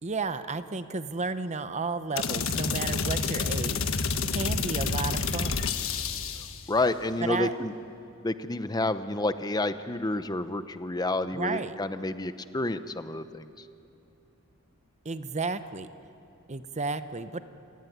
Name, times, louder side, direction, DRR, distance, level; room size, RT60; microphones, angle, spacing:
voice 1, 0.0-3.8 4.3-5.6 7.2-7.5 11.3-11.7 15.0-15.9 16.5-17.4, right 3 dB, 30° right, 11 dB, 0.9 m, -32 dB
sound 1, 2.2-6.6, left 4 dB, 65° left, 1.5 m, -29 dB
voice 2, 6.4-7.7 8.2-13.7, left 2 dB, 20° left, 11 dB, 0.8 m, -30 dB
28.5 x 18.0 x 9.3 m, 2.8 s
head